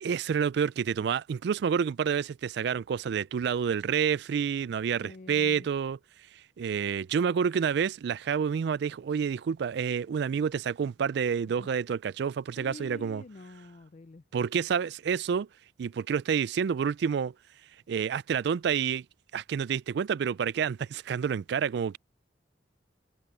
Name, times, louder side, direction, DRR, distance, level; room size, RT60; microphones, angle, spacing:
voice 1, 0.0-6.0 6.6-13.2 14.3-15.5 15.8-17.3 17.9-19.0 19.3-22.0, right 7 dB, 60° right, 0.3 m, -28 dB
voice 2, 5.0-5.7 11.5-11.7 12.6-14.2, left 3 dB, 40° left, 0.4 m, -47 dB
head